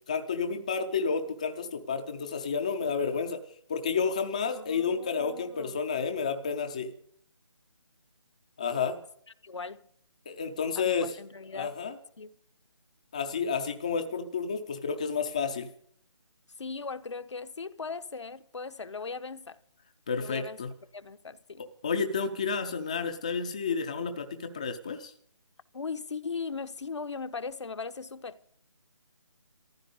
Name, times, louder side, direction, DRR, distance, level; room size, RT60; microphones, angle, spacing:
voice 1, 0.1-3.4 3.7-6.9 8.6-9.0 10.3-11.2 11.5-12.0 13.1-15.7 20.1-20.7 21.8-25.1, left 5 dB, 15° left, 0.5 m, -30 dB
voice 2, 4.5-5.8 9.4-9.8 10.8-11.7 12.2-12.4 16.6-19.6 20.2-20.6 20.9-21.6 25.7-28.6, left 4 dB, 65° left, 1.0 m, -39 dB
14.5 x 12.0 x 7.0 m
figure-of-eight pair, 170°, 16 cm